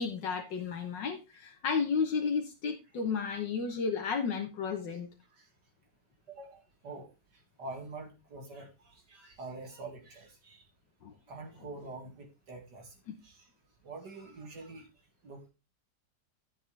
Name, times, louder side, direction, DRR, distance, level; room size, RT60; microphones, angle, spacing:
voice 1, 0.0-5.1 11.0-11.1 13.1-13.2, left 5 dB, 75° left, 3 dB, 1.7 m, -32 dB
voice 2, 6.3-7.1 7.6-10.6 11.3-12.9 13.2-13.5 13.8-14.9 15.2-15.5, right 3 dB, 65° right, 2 dB, 2.7 m, -45 dB
12.0 x 7.8 x 3.3 m, 0.26 s
omnidirectional pair, 2.0 m